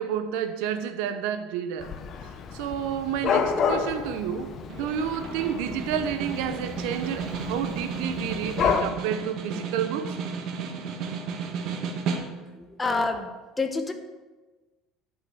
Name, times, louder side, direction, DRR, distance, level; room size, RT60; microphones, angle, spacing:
voice 1, 0.0-1.9 2.2-10.2, right 8 dB, 85° right, 1.0 m, -30 dB
Dog / Cat, 1.8-8.8, left 6 dB, 40° left, 0.9 m, -30 dB
Snare drum, 4.7-12.6, right 5 dB, 55° right, 1.4 m, -33 dB
voice 2, 12.5-13.3 13.6-13.9, left 3 dB, 15° left, 1.1 m, -27 dB
11.5 x 5.9 x 7.0 m
cardioid pair, 135°, 0 cm